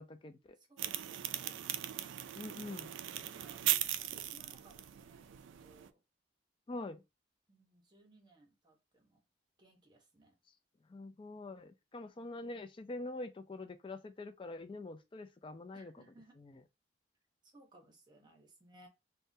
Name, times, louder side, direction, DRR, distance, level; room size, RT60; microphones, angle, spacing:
voice 1, 0.0-0.6 2.4-2.9 6.7-7.0 10.9-16.0 16.4-16.5, left 2 dB, 25° left, 0.3 m, -45 dB
voice 2, 0.6-1.7 2.3-6.0 7.5-9.2 9.6-10.4 15.7-16.4 17.4-18.9, right 2 dB, 25° right, 0.8 m, -63 dB
sound 1, 0.8-5.9, right 12 dB, 85° right, 0.3 m, -38 dB
3.6 x 2.1 x 2.6 m
head